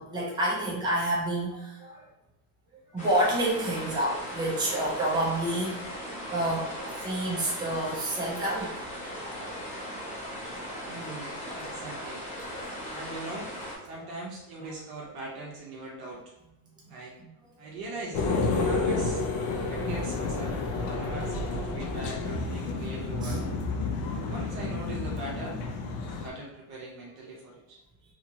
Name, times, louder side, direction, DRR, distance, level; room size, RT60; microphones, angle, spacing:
voice 1, 0.0-2.0 2.9-5.8 6.3-6.7 7.0-8.7 11.7-11.8 19.5-19.6 23.2-23.3, right 1 dB, 10° right, -5 dB, 0.3 m, -28 dB
sound 1, 3.0-13.8, equal, 15° left, 0.6 m, -38 dB
voice 2, 10.9-12.3 12.9-13.5 13.8-16.2 16.9-17.1 17.6-18.3 18.5-19.2 19.6-20.6 20.9-23.4 24.3-25.6 26.0-27.8, right 2 dB, 50° right, -3 dB, 0.6 m, -40 dB
sound 2, 18.1-26.3, left 3 dB, 55° left, 0.5 m, -30 dB
2.8 x 2.7 x 2.6 m, 0.96 s
cardioid pair, 160°, 50 cm